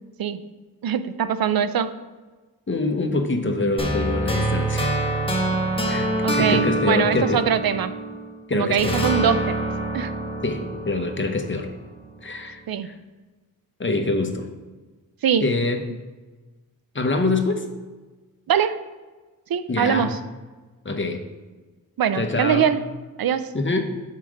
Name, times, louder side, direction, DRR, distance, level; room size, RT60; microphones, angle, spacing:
voice 1, 0.8-1.9 6.2-7.9 8.5-9.7 9.9-10.1 12.7-12.9 15.2-15.5 18.5-18.8 19.5-20.2 22.0-22.8 23.2-23.5, right 8 dB, 80° right, 12 dB, 0.5 m, -22 dB
voice 2, 2.7-5.1 5.9-7.4 8.5-9.0 10.4-11.7 12.2-12.9 13.8-14.5 15.4-15.8 16.9-17.6 19.7-20.1 20.8-21.2 22.1-22.7 23.5-23.8, left 2 dB, 35° left, 5 dB, 0.8 m, -25 dB
sound 1, 3.8-8.3 8.8-11.9, right 1 dB, 15° left, 1.2 m, -25 dB
5.7 x 4.7 x 6.3 m, 1.3 s
wide cardioid pair, 110°, 35 cm